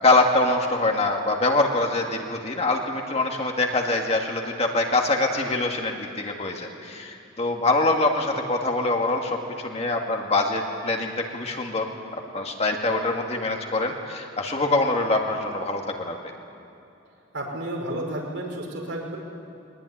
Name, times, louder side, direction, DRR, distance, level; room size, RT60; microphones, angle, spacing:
voice 1, 0.0-11.8 12.1-16.2, left 2 dB, 30° left, 2 dB, 2.1 m, -24 dB
voice 2, 17.3-19.2, right 1 dB, 75° right, 1 dB, 5.1 m, -31 dB
22.0 x 19.5 x 10.0 m, 2.8 s
head